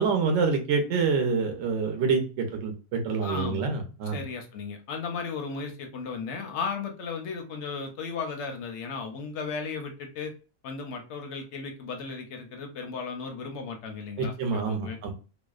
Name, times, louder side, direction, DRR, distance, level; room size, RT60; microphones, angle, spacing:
voice 1, 0.0-4.2 14.2-15.1, right 5 dB, 65° right, 4 dB, 0.8 m, -27 dB
voice 2, 3.2-3.7 4.1-10.3 10.6-15.0, left 5 dB, 65° left, 4 dB, 0.7 m, -35 dB
2.6 x 2.0 x 2.3 m, 0.34 s
omnidirectional pair, 1.5 m